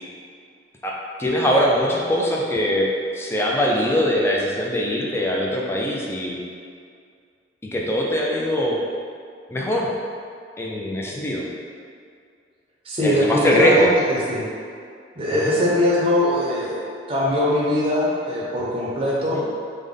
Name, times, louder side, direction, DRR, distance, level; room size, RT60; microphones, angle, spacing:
voice 1, 0.8-2.9 3.2-6.4 7.7-8.8 9.5-9.9 10.6-11.4 13.0-13.9 15.3-15.6 19.3-19.4, equal, 15° left, -3 dB, 0.4 m, -22 dB
voice 2, 12.8-14.5 15.2-19.4, left 1 dB, 30° right, -6 dB, 0.6 m, -22 dB
3.3 x 2.1 x 3.7 m, 2.2 s
head